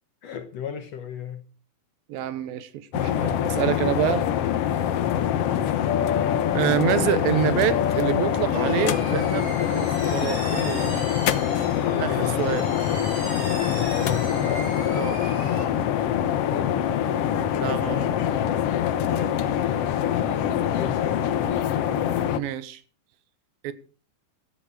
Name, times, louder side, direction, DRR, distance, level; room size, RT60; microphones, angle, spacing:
voice 1, 0.2-1.4 5.0-5.3 11.8-12.7 13.6-14.7 16.4-16.7 20.5-21.4, left 9 dB, 65° left, 1.7 m, -35 dB
voice 2, 2.1-4.3 6.5-11.0 11.9-12.7 15.0-15.2 17.6-18.1 22.4-22.8 23.6-23.7, right 11 dB, 90° right, 2.8 m, -27 dB
sound 1, 2.9-22.4, left 10 dB, 90° left, 1.3 m, -24 dB
sound 2, 8.5-15.6, right 2 dB, 40° right, 5.9 m, -38 dB
15.5 x 13.0 x 4.8 m
omnidirectional pair, 4.1 m